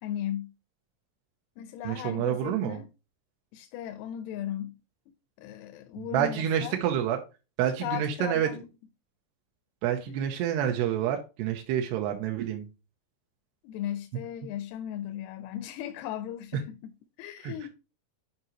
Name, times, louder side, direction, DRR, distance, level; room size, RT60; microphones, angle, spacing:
voice 1, 0.0-0.5 1.6-2.9 3.5-4.8 5.1-6.8 7.8-8.7 10.1-10.2 13.6-16.9 17.2-17.7, left 11 dB, 90° left, 2.7 m, -37 dB
voice 2, 1.8-2.8 6.0-7.2 7.6-8.5 9.8-12.6 17.4-17.7, right 10 dB, 90° right, 2.9 m, -28 dB
9.6 x 4.9 x 3.0 m
omnidirectional pair, 4.6 m